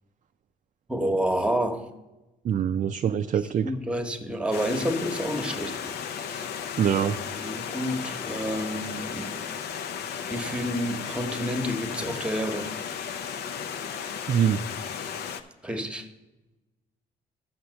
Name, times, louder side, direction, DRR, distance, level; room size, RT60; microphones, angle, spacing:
voice 1, 0.9-1.9 3.6-6.5 7.4-9.4 10.3-12.7 15.6-16.1, equal, 5° right, 1.0 m, -29 dB
voice 2, 2.4-3.7 6.8-7.2 14.3-14.6, right 8 dB, 50° right, 0.4 m, -24 dB
Stream, 4.5-15.4, left 7 dB, 80° left, 0.6 m, -35 dB
7.0 x 5.9 x 6.3 m
cardioid pair, 75°, 16 cm